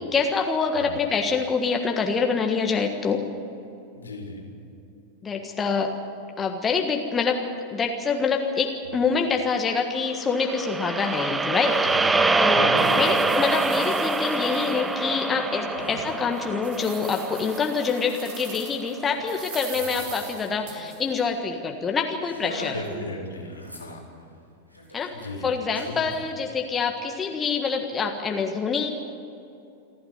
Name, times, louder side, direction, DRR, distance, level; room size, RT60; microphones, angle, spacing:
voice 1, 0.1-3.2 5.2-5.9 6.4-7.4 7.7-12.7 12.9-22.8 24.9-28.9, left 5 dB, 20° left, 3 dB, 1.5 m, -26 dB
voice 2, 3.9-4.5 11.9-12.2 12.5-13.0 15.7-16.0 22.7-24.0 25.1-25.4 25.9-26.1, left 3 dB, 75° left, 1 dB, 3.7 m, -36 dB
sound 1, 10.3-18.6, right 3 dB, 10° right, 0.9 m, -25 dB
sound 2, 11.1-11.2 11.7-11.8 12.4-15.2 15.6-15.7 16.2-18.9 19.3-21.2, right 7 dB, 50° right, 3.4 m, -42 dB
Laughter, 13.8-13.9 14.2-20.9 21.2-21.3 21.6-21.8 22.2-23.2 23.4-24.3 24.7-26.2, equal, 85° right, 3.5 m, -43 dB
27.5 x 12.0 x 9.6 m, 2.7 s
figure-of-eight pair, 90°, 0 cm